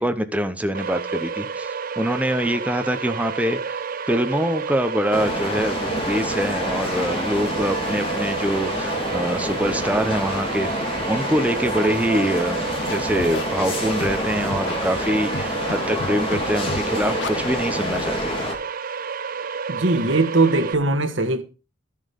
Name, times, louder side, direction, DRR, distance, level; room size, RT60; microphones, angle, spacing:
voice 1, 0.0-10.7 11.1-18.3, equal, 10° right, 0.9 m, -24 dB
sound 1, 0.7-20.7, right 6 dB, 50° right, 0.6 m, -30 dB
sound 2, 5.1-18.5, left 1 dB, 30° left, 2.6 m, -28 dB
Scratching (performance technique), 12.9-13.4 14.0-14.2 14.5-14.7 15.3-15.7 16.0-16.4 16.7-16.8 17.1-17.3, left 3 dB, 65° left, 0.8 m, -30 dB
voice 2, 19.7-21.4, right 2 dB, 85° right, 1.5 m, -20 dB
12.5 x 7.5 x 5.3 m
head